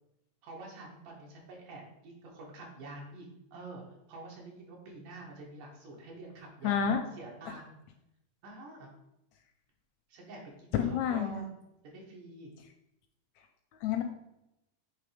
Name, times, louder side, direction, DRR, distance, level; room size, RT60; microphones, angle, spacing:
voice 1, 0.4-3.3 3.5-7.8 8.4-8.9 10.1-11.5 11.8-12.5, right 2 dB, 80° right, -2 dB, 2.8 m, -47 dB
voice 2, 6.6-7.0 10.7-11.4 13.8-14.0, left 8 dB, 80° left, 6 dB, 1.6 m, -28 dB
7.7 x 3.3 x 4.9 m, 0.86 s
omnidirectional pair, 3.7 m